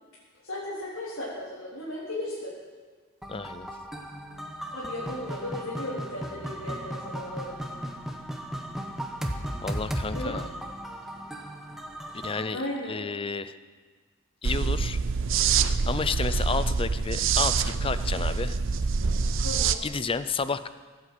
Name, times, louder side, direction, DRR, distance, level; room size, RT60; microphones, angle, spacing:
voice 1, 0.4-2.5 4.7-7.6 10.1-10.4 12.5-13.0 19.4-19.8, left 1 dB, 80° left, -8 dB, 4.0 m, -35 dB
sound 1, 3.2-12.5, equal, ahead, 1.1 m, -36 dB
voice 2, 3.3-3.7 9.6-10.4 12.2-12.6 12.9-13.5 14.4-15.0 15.9-18.6 19.8-20.7, left 4 dB, 25° left, 13 dB, 0.5 m, -31 dB
sound 2, 14.4-19.7, right 5 dB, 65° right, 0.6 m, -26 dB
17.5 x 8.3 x 7.8 m, 1.5 s
head